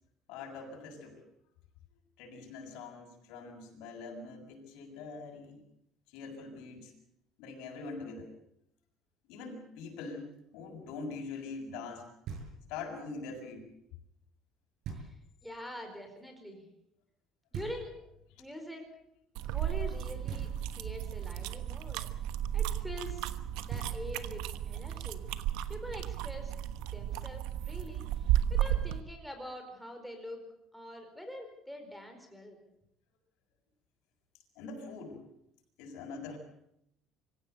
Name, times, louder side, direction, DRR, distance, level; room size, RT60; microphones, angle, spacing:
voice 1, 0.3-1.2 2.2-5.6 6.1-6.9 7.4-8.3 9.3-12.1 12.7-13.7 34.6-35.2 35.8-36.4, left 4 dB, 85° left, 2 dB, 7.3 m, -43 dB
Knock, 12.3-12.9 14.8-15.5 17.5-18.3 20.3-21.0 23.3-23.4 23.7-24.5, right 6 dB, 55° right, 6.8 m, -43 dB
voice 2, 14.9-16.6 17.5-18.0 18.4-18.9 19.4-22.0 22.5-23.3 23.6-25.2 25.7-26.5 26.9-30.4 30.7-32.6, left 1 dB, ahead, 3 dB, 4.6 m, -45 dB
sound 1, 19.3-29.0, right 11 dB, 90° right, 1.2 m, -34 dB
25.5 x 16.0 x 8.2 m, 0.78 s
cardioid pair, 165°, 0 cm